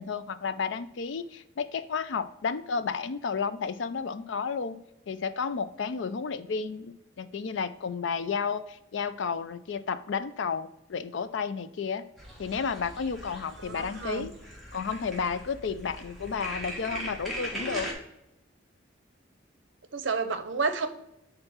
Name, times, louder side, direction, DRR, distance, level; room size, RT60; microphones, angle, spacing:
voice 1, 0.0-4.8 5.1-12.0 12.4-14.3 14.7-17.9, left 5 dB, 70° left, 13 dB, 0.4 m, -32 dB
sound 1, 12.2-17.9, right 1 dB, ahead, 1.2 m, -40 dB
voice 2, 13.6-14.3 19.9-20.9, right 4 dB, 70° right, 9 dB, 0.6 m, -30 dB
4.5 x 3.8 x 5.5 m, 0.87 s
head